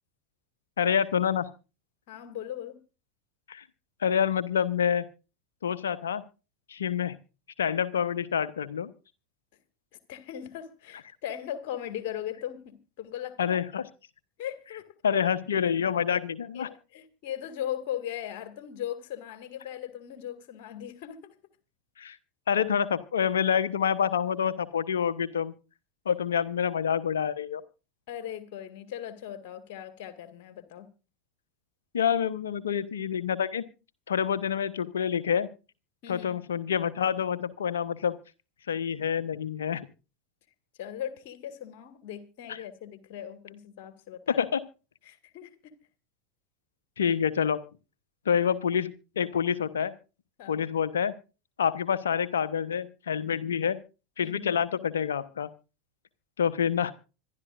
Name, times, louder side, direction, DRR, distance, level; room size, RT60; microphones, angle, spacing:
voice 1, 0.8-1.5 3.5-3.6 4.0-5.1 5.6-6.2 6.7-7.1 7.6-8.9 13.4-13.8 15.0-16.7 22.0-22.2 22.5-25.5 26.0-27.6 31.9-33.6 34.1-35.5 36.1-38.2 38.7-39.9 44.4-44.6 47.0-47.6 48.3-49.9 50.5-51.1 51.6-53.8 54.2-55.5 56.4-56.9, left 7 dB, 70° left, 1.0 m, -27 dB
voice 2, 2.1-2.8 10.1-13.6 14.4-14.9 16.5-21.3 28.1-30.9 36.0-36.4 40.8-44.4 45.0-45.7 50.4-50.6 54.2-54.5, left 10 dB, 50° left, 2.1 m, -38 dB
25.5 x 12.0 x 2.6 m
figure-of-eight pair, 85°, 0 cm